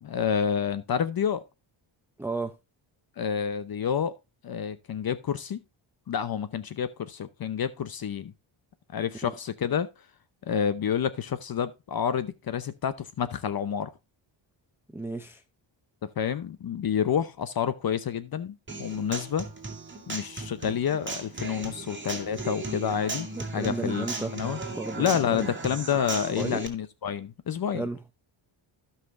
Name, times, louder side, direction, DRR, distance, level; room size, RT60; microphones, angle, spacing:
voice 1, 0.0-1.4 3.2-4.1 4.4-5.6 6.1-8.3 8.9-9.9 10.5-13.9 16.0-19.5 20.1-23.3 23.5-24.1 24.3-24.6 25.0-27.8, left 8 dB, 50° left, 0.8 m, -29 dB
voice 2, 2.2-2.6 9.2-9.3 14.9-15.4 23.3-24.3 24.7-25.5 26.4-26.6 27.7-28.0, right 2 dB, 5° right, 0.6 m, -33 dB
Human voice / Acoustic guitar, 18.7-26.7, right 3 dB, 25° right, 2.3 m, -36 dB
16.0 x 5.7 x 2.6 m
cardioid pair, 120°, 48 cm